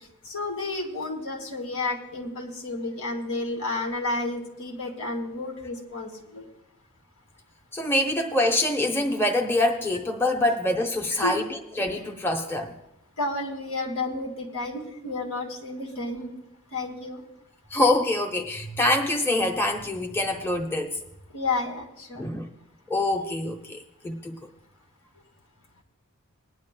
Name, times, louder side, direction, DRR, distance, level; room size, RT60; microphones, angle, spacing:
voice 1, 0.2-6.5 11.2-11.4 13.2-16.3 16.7-17.2 21.3-22.3, left 2 dB, 80° left, 1 dB, 2.3 m, -31 dB
voice 2, 7.7-12.7 17.7-21.0 22.1-22.5 22.9-24.4, left 1 dB, 10° left, 2 dB, 0.9 m, -25 dB
21.0 x 10.5 x 2.3 m, 0.89 s
head